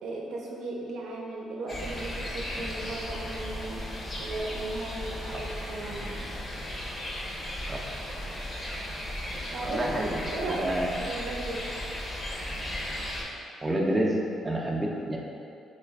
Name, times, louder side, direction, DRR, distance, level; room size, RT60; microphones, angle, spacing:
voice 1, 0.0-3.8 4.2-6.1 9.5-10.0 10.3-10.7 11.0-11.6, right 2 dB, 80° right, -3 dB, 0.5 m, -36 dB
sound 1, 1.7-13.2, left 1 dB, 35° left, 0.7 m, -36 dB
voice 2, 9.6-10.9 13.6-14.2 14.4-15.2, right 1 dB, 20° right, -2 dB, 0.4 m, -29 dB
3.1 x 2.4 x 3.4 m, 2.5 s
cardioid pair, 90°, 0 cm